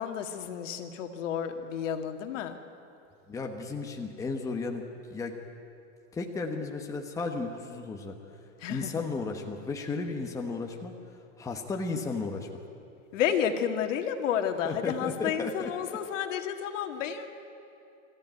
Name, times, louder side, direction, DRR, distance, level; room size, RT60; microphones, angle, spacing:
voice 1, 0.0-2.5 8.6-9.0 13.1-17.3, left 8 dB, 70° left, 6 dB, 2.0 m, -31 dB
voice 2, 3.3-4.8 5.1-5.3 6.1-8.2 8.7-10.9 11.4-12.6 14.6-16.0, left 3 dB, 10° left, 2 dB, 1.1 m, -34 dB
25.5 x 14.0 x 9.3 m, 2.7 s
supercardioid pair, 155°, 39 cm